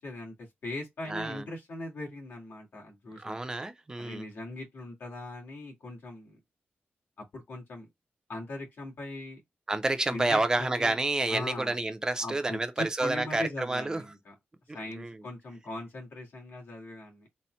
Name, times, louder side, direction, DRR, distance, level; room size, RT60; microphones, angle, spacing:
voice 1, 0.0-3.4 4.0-6.4 7.2-7.9 8.3-9.4 10.1-10.9 11.3-11.8 12.2-14.3 14.7-17.3, left 2 dB, 65° left, 1.8 m, -40 dB
voice 2, 1.1-1.5 3.2-4.3 9.7-14.0 14.7-15.2, right 2 dB, 20° right, 0.5 m, -29 dB
4.1 x 2.1 x 4.3 m
wide cardioid pair, 165°, 4 cm